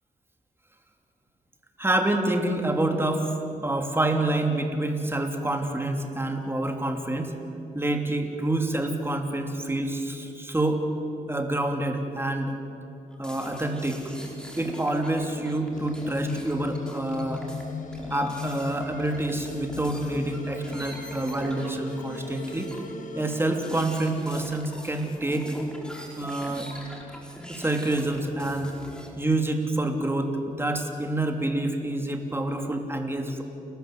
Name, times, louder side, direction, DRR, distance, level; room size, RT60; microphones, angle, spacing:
voice 1, 1.8-3.3 3.6-7.3 7.7-10.8 11.3-12.6 13.2-14.0 14.6-17.5 18.1-22.7 23.2-25.6 26.2-26.7 27.5-28.7 29.2-33.4, right 1 dB, 15° right, 4 dB, 3.0 m, -27 dB
sound 1, 13.1-23.0 23.3-29.1, equal, 5° left, 4.4 m, -43 dB
sound 2, 15.7-23.7, left 5 dB, 65° left, 1.6 m, -38 dB
29.0 x 14.0 x 7.8 m, 2.7 s
cardioid pair, 65°, 14 cm